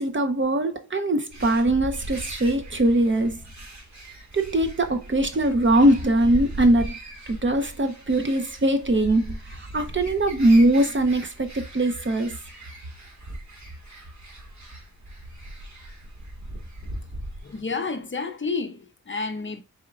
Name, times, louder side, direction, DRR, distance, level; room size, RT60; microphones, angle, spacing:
voice 1, 0.0-3.4 4.3-7.0 7.3-12.4, right 1 dB, 35° right, 0.9 m, -21 dB
sound 1, 1.3-17.6, right 1 dB, 50° right, 2.0 m, -39 dB
voice 2, 17.4-19.6, left 4 dB, 35° left, 0.7 m, -30 dB
4.4 x 4.4 x 2.5 m
cardioid pair, 70°, 35 cm